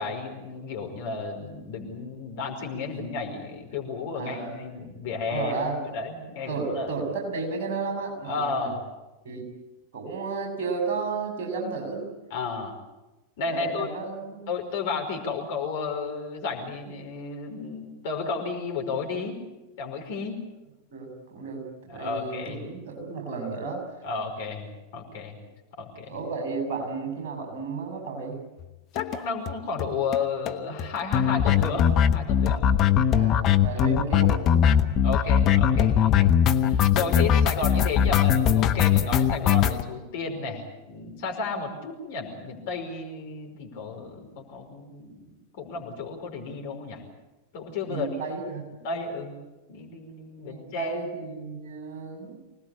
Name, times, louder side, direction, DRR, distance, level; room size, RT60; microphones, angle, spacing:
voice 1, 0.0-5.5 5.9-6.9 8.2-8.8 12.3-12.7 13.4-13.9 14.5-19.4 19.8-20.4 21.9-22.6 24.0-24.7 24.9-25.4 25.8-26.2 28.9-32.6 33.9-34.0 35.0-36.3 36.6-45.3 45.6-47.0 47.5-48.1 48.8-49.3 49.7-51.0, left 4 dB, 50° left, 2 dB, 5.2 m, -32 dB
voice 2, 4.1-4.5 5.3-5.9 6.5-8.7 9.2-9.5 9.9-12.1 13.5-14.5 20.9-23.8 26.1-28.5 33.2-34.8 37.0-37.3 47.9-48.6 50.5-52.5, right 4 dB, 50° right, 2 dB, 7.0 m, -33 dB
sound 1, 29.0-29.2 29.5-29.6 29.8-29.9 30.1-30.2 30.5-39.8, left 9 dB, 35° left, 1.2 m, -21 dB
25.0 x 19.0 x 8.6 m, 1.1 s
figure-of-eight pair, 90°, 0 cm